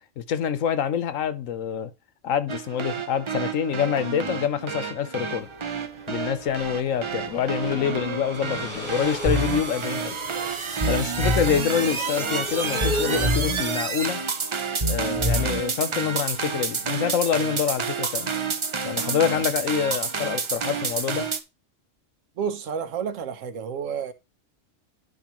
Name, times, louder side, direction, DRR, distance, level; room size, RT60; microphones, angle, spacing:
voice 1, 0.2-1.9 2.2-5.5 6.1-10.2 10.8-14.2 14.9-18.3 18.8-21.3, left 8 dB, 85° left, 1.2 m, -26 dB
sound 1, 2.5-21.4, right 5 dB, 45° right, 0.4 m, -30 dB
sound 2, 5.4-13.6, left 2 dB, 35° left, 0.9 m, -37 dB
sound 3, 9.2-9.6 10.8-11.6 12.8-13.6 14.8-15.6, equal, 30° right, 0.9 m, -25 dB
voice 2, 22.4-24.1, right 7 dB, 80° right, 1.2 m, -30 dB
10.5 x 4.7 x 3.0 m
omnidirectional pair, 1.3 m